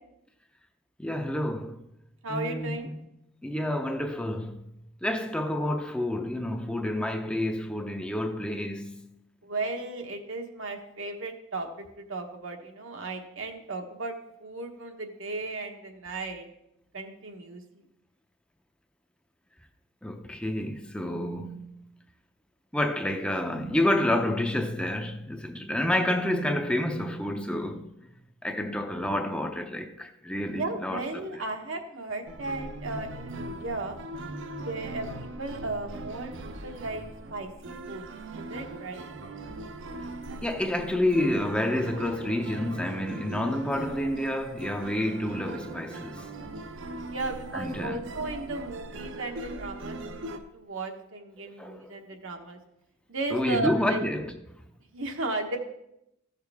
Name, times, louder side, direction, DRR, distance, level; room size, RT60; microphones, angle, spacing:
voice 1, 1.0-1.9 2.3-3.0 3.4-4.7 5.0-9.1 20.0-21.7 22.7-27.9 28.4-31.4 40.4-46.3 47.5-48.0 51.6-51.9 53.3-54.3, left 1 dB, 5° left, 0.5 m, -29 dB
voice 2, 2.2-2.9 9.4-16.5 16.9-17.6 30.5-34.0 34.6-37.0 37.3-38.1 38.3-39.1 47.1-52.6 53.1-54.0 54.9-55.6, right 2 dB, 80° right, 1.2 m, -35 dB
sound 1, 32.3-50.4, right 2 dB, 65° right, 0.7 m, -40 dB
14.5 x 6.5 x 3.5 m
head